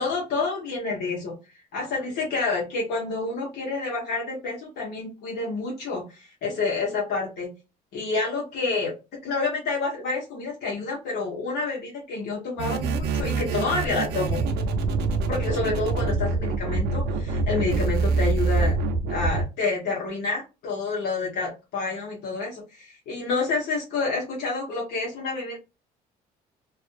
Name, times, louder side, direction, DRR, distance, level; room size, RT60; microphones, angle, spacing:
voice 1, 0.0-1.3 1.7-7.5 7.9-8.9 9.2-14.4 15.3-18.8 19.1-25.6, left 3 dB, 70° left, -3 dB, 1.1 m, -28 dB
sound 1, 12.6-19.4, right 3 dB, 75° right, 0.5 m, -25 dB
2.5 x 2.4 x 2.5 m, 0.28 s
cardioid pair, 110°, 17 cm